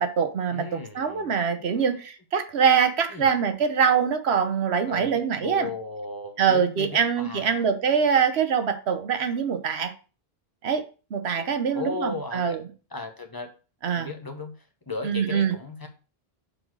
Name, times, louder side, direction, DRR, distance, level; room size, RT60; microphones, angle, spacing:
voice 1, 0.0-5.7 6.4-9.9 10.6-10.8 11.1-12.6 13.8-14.1 15.0-15.5, right 7 dB, 85° right, 8 dB, 1.2 m, -24 dB
voice 2, 0.5-2.0 3.1-3.3 4.9-7.6 11.4-12.6 12.9-13.5 14.0-15.9, left 3 dB, 20° left, 5 dB, 1.1 m, -36 dB
6.6 x 4.3 x 4.6 m, 0.35 s
omnidirectional pair, 1.0 m